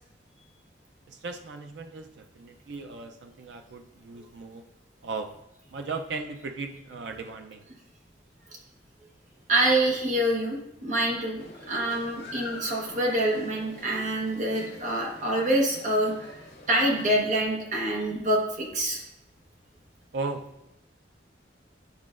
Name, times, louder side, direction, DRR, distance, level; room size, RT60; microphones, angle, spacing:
voice 1, 1.1-4.6 5.0-5.3 5.7-7.6 20.1-20.7, right 3 dB, 70° right, 5 dB, 0.4 m, -37 dB
voice 2, 9.5-16.3 16.7-19.0, right 1 dB, 40° right, -1 dB, 1.1 m, -26 dB
sound 1, 11.4-17.2, left 2 dB, 65° left, 1.6 m, -45 dB
9.5 x 4.8 x 2.4 m, 0.85 s
head